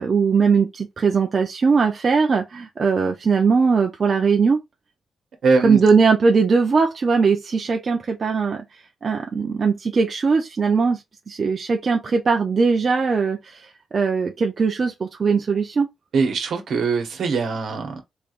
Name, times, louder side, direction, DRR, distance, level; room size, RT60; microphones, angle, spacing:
voice 1, 0.0-4.6 5.6-8.6 9.0-13.6 13.9-15.9, right 5 dB, 35° right, 0.6 m, -20 dB
voice 2, 5.4-5.8 16.1-18.0, right 4 dB, 60° right, 1.3 m, -21 dB
3.6 x 3.4 x 2.5 m
wide cardioid pair, 165°, 0 cm